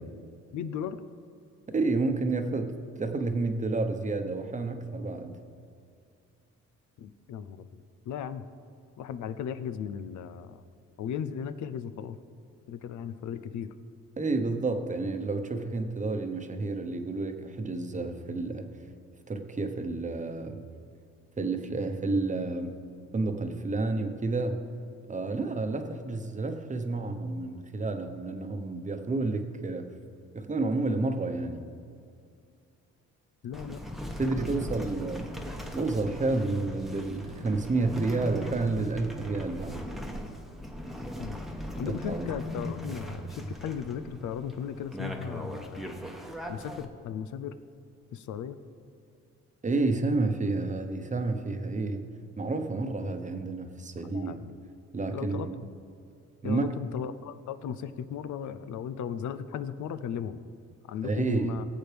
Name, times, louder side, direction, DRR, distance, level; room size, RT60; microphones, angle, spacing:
voice 1, 0.5-1.0 7.0-8.4 9.0-10.6 11.0-12.2 12.7-13.7 33.4-33.8 41.2-41.4 41.8-46.0 46.5-47.6 48.1-48.6 54.1-54.6 55.1-55.5 56.4-60.4 60.9-61.6, left 8 dB, 70° left, 12 dB, 0.7 m, -36 dB
voice 2, 1.7-5.4 14.2-18.6 19.3-20.6 21.4-22.8 23.1-24.6 25.1-29.9 30.3-31.6 34.2-35.3 35.7-39.8 42.1-42.3 49.6-52.0 52.4-54.3 54.9-55.6 56.4-56.6 61.0-61.5, right 3 dB, 25° right, 6 dB, 1.0 m, -30 dB
sound 1, 33.5-46.9, equal, ahead, 1.1 m, -39 dB
18.5 x 8.0 x 3.5 m, 2.4 s
cardioid pair, 90°, 30 cm